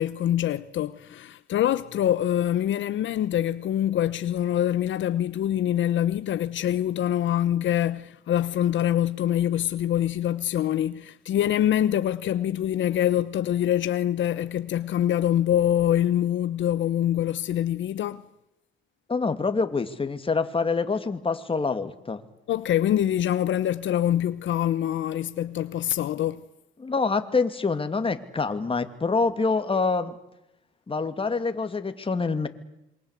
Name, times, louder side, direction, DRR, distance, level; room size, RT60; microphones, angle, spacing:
voice 1, 0.0-18.3 22.5-26.4, left 11 dB, 70° left, 1.0 m, -25 dB
voice 2, 19.1-22.2 26.8-30.1 30.9-32.5, left 4 dB, 25° left, 2.7 m, -26 dB
27.5 x 24.0 x 8.4 m
cardioid pair, 90°, 20 cm